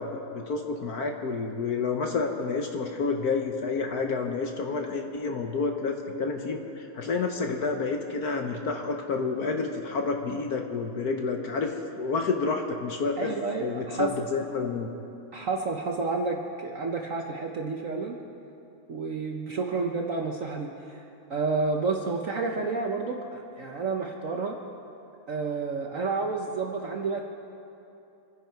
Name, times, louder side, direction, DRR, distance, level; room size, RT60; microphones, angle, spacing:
voice 1, 0.0-13.3 13.6-14.9, left 4 dB, 55° left, 3 dB, 1.3 m, -29 dB
voice 2, 13.2-14.1 15.3-18.1 18.9-21.0 21.3-24.6 25.3-27.2, right 4 dB, 55° right, 1 dB, 0.9 m, -30 dB
25.0 x 10.5 x 4.5 m, 2.8 s
omnidirectional pair, 2.2 m